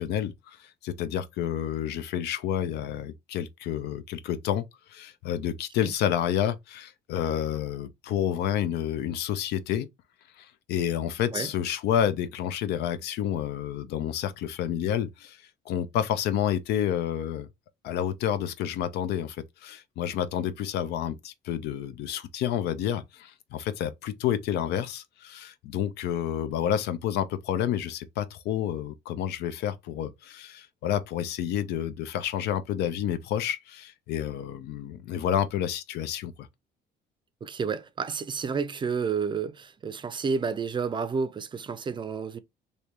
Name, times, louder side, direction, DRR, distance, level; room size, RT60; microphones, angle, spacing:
voice 1, 0.0-9.9 10.4-17.5 17.8-36.5, left 10 dB, 80° left, 0.5 m, -29 dB
voice 2, 37.4-42.4, right 5 dB, 30° right, 0.5 m, -30 dB
3.2 x 2.7 x 2.9 m
cardioid pair, 110°, 17 cm